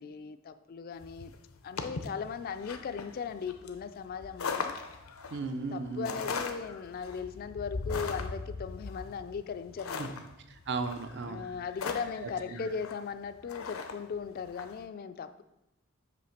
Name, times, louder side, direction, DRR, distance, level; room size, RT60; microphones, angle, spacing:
voice 1, 0.0-1.3 1.6-4.7 5.7-10.2 11.3-15.4, left 6 dB, 45° left, 11 dB, 0.3 m, -38 dB
sound 1, 1.0-14.8, left 4 dB, 80° left, 0.6 m, -40 dB
voice 2, 5.3-6.2 10.0-10.1 10.5-11.4 12.5-12.7, right 4 dB, 55° right, 8 dB, 0.5 m, -36 dB
7.6 x 3.2 x 5.8 m, 0.90 s
head